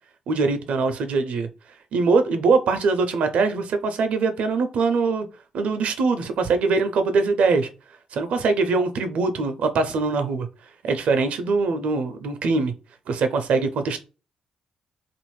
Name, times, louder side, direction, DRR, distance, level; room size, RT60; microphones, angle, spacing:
voice 1, 0.3-1.5 1.9-5.3 5.5-7.7 8.1-10.5 10.8-12.7 13.1-14.0, right 4 dB, 70° right, 0.5 m, -22 dB
2.6 x 2.4 x 3.1 m
hypercardioid pair, 45°, 2 cm